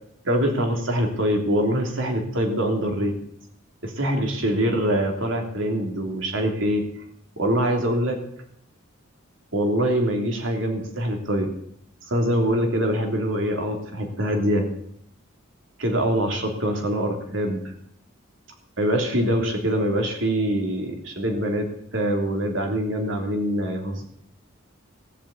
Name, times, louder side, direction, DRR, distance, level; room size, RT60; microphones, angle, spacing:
voice 1, 0.2-3.1 3.8-6.8 7.4-8.2 9.5-11.5 12.1-14.7 15.8-17.7 18.8-24.0, equal, 60° right, 2 dB, 3.0 m, -24 dB
18.0 x 7.3 x 8.3 m, 0.72 s
head